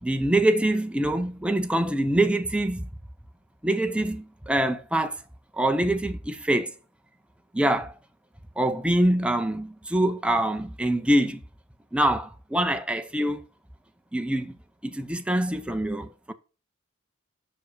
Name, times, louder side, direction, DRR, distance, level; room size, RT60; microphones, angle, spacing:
voice 1, 0.0-2.9 3.6-5.2 5.6-6.7 7.5-7.9 8.6-11.4 11.9-13.4 14.1-14.5 14.8-16.3, right 1 dB, 5° right, 0.6 m, -24 dB
5.8 x 5.1 x 6.5 m
head